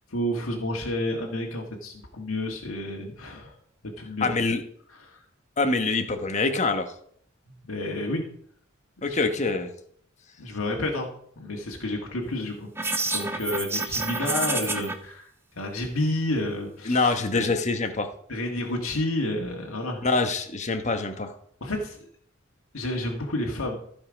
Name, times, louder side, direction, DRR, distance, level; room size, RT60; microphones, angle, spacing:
voice 1, 0.1-3.6 4.0-4.4 4.9-5.2 7.5-8.3 9.1-9.2 10.4-12.7 13.1-17.5 18.3-20.1 21.6-22.1 22.7-23.8, left 1 dB, 90° left, 0 dB, 1.7 m, -30 dB
voice 2, 4.2-4.6 5.6-6.9 9.0-9.7 16.8-18.1 20.0-21.3, left 3 dB, 35° left, 7 dB, 1.1 m, -25 dB
sound 1, 12.8-14.9, right 3 dB, 10° right, 0.8 m, -28 dB
15.0 x 5.4 x 5.2 m, 0.63 s
head